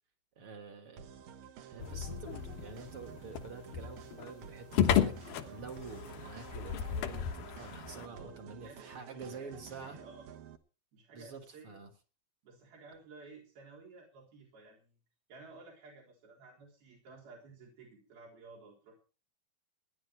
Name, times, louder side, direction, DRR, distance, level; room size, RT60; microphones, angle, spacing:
voice 1, 0.4-1.1 1.7-5.2 5.5-10.0 11.1-11.9, right 4 dB, 45° right, 2.0 m, -47 dB
sound 1, 1.0-10.6, right 8 dB, 70° right, 2.8 m, -51 dB
sound 2, 1.8-8.1, left 9 dB, 80° left, 3.0 m, -34 dB
voice 2, 7.9-8.3 8.6-10.3 10.9-11.8 12.4-15.0 15.3-19.0, right 3 dB, 85° right, 5.8 m, -54 dB
18.0 x 11.0 x 4.7 m
omnidirectional pair, 4.2 m